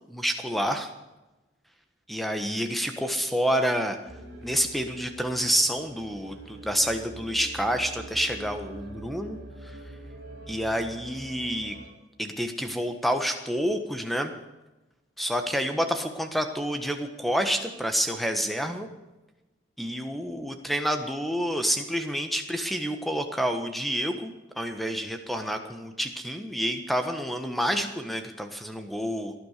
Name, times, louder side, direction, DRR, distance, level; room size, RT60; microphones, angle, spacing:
voice 1, 0.1-0.9 2.1-4.0 4.4-9.8 10.5-11.8 12.2-14.3 15.2-18.9 19.8-29.3, equal, ahead, 6 dB, 1.4 m, -28 dB
sound 1, 4.1-11.9, right 1 dB, 50° right, 4.2 m, -44 dB
18.0 x 11.5 x 6.8 m, 1.0 s
head